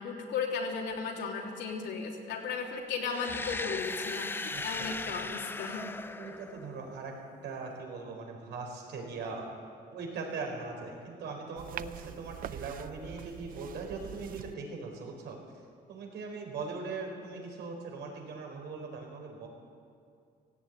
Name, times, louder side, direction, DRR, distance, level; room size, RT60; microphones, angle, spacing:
voice 1, 0.0-5.9, left 5 dB, 85° left, 0 dB, 3.3 m, -35 dB
sound 1, 3.1-7.0, left 3 dB, 10° left, 0.4 m, -38 dB
voice 2, 4.5-5.2 6.2-7.1 7.4-9.5 9.9-15.4 15.9-19.5, right 4 dB, 75° right, 1 dB, 4.5 m, -40 dB
sound 2, 11.6-14.6, right 11 dB, 55° right, 0.5 m, -44 dB
17.0 x 17.0 x 9.2 m, 2.4 s
cardioid pair, 170°, 18 cm